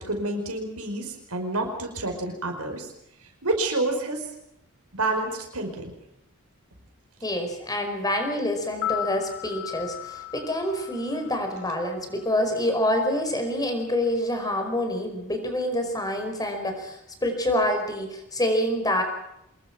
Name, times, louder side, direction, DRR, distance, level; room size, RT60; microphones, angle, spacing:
voice 1, 0.1-2.9 3.4-4.3 4.9-5.9, right 2 dB, 90° right, 3 dB, 5.2 m, -28 dB
voice 2, 7.2-19.0, left 1 dB, 15° left, 5 dB, 5.1 m, -27 dB
sound 1, 8.7-12.8 13.1-13.2, left 13 dB, 60° left, 1.6 m, -36 dB
26.0 x 21.0 x 6.1 m, 0.80 s
head